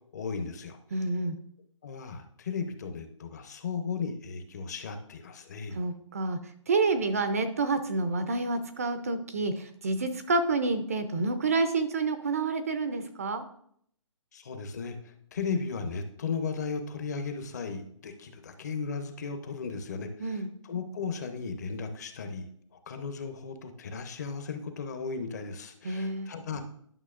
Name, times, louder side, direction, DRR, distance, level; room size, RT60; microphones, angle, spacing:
voice 1, 0.0-0.8 1.8-5.8 14.3-22.5 22.9-26.6, left 5 dB, 35° left, 7 dB, 0.8 m, -36 dB
voice 2, 0.9-1.4 5.7-6.4 6.7-13.4 20.2-20.5 25.8-26.3, right 3 dB, 30° right, 9 dB, 0.5 m, -28 dB
11.0 x 6.2 x 2.5 m, 0.66 s
hypercardioid pair, 165°, 16 cm